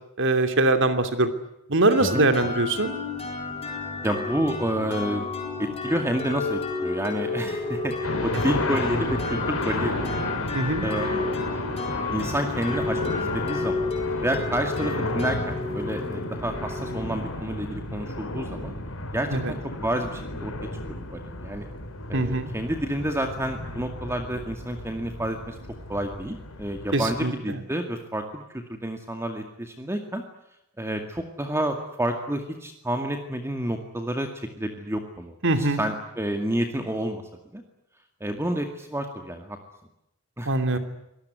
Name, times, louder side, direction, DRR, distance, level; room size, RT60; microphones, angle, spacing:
voice 1, 0.2-1.3 1.7-2.9 10.5-10.9 19.3-19.5 22.1-22.5 26.9-27.6 35.4-35.8 40.5-40.8, right 2 dB, 60° right, 8 dB, 2.8 m, -22 dB
sound 1, 1.9-17.5, left 3 dB, 30° left, 7.6 m, -31 dB
voice 2, 2.0-2.5 4.0-5.3 5.8-10.1 10.8-11.2 12.1-13.9 14.2-18.7 19.1-20.5 20.9-21.7 22.1-25.6 25.9-30.2 30.8-34.3 34.6-37.2 37.5-37.6 38.2-39.6 40.4-40.5, right 1 dB, 10° right, 5 dB, 2.2 m, -29 dB
sound 2, 8.0-27.2, left 2 dB, 75° left, 4.2 m, -33 dB
25.5 x 19.5 x 9.5 m, 0.85 s
head